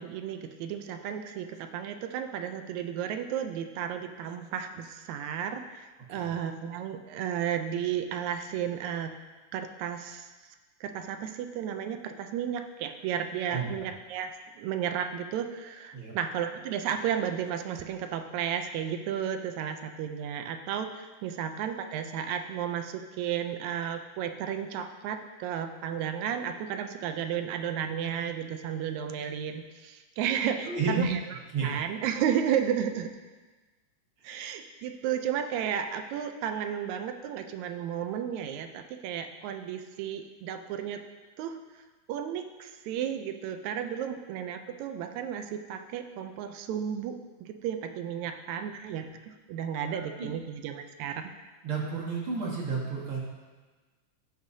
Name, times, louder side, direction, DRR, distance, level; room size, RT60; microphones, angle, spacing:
voice 1, 0.0-9.2 9.5-10.3 10.8-31.2 31.6-33.1 34.2-41.0 41.4-41.6 42.1-51.3, right 9 dB, 80° right, 7 dB, 1.9 m, -33 dB
voice 2, 30.6-31.1 31.5-31.8 48.6-48.7 49.9-50.3 51.6-53.2, right 4 dB, 50° right, -4 dB, 2.4 m, -31 dB
16.5 x 6.5 x 2.8 m, 1.3 s
omnidirectional pair, 3.4 m